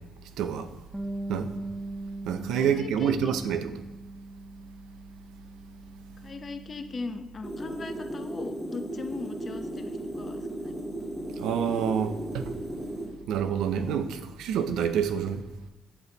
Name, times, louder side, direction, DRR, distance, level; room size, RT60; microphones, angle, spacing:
voice 1, 0.4-0.7 1.3-1.5 2.3-3.7 11.4-12.4 13.3-15.4, right 8 dB, 85° right, 0.5 m, -27 dB
Bass guitar, 0.9-7.2, right 2 dB, 5° right, 0.5 m, -40 dB
voice 2, 2.5-3.3 6.2-10.7 13.0-13.3, left 4 dB, 40° left, 0.7 m, -39 dB
sound 1, 7.4-13.1, right 1 dB, 30° right, 2.0 m, -36 dB
7.8 x 4.1 x 3.9 m
cardioid pair, 90°, 0 cm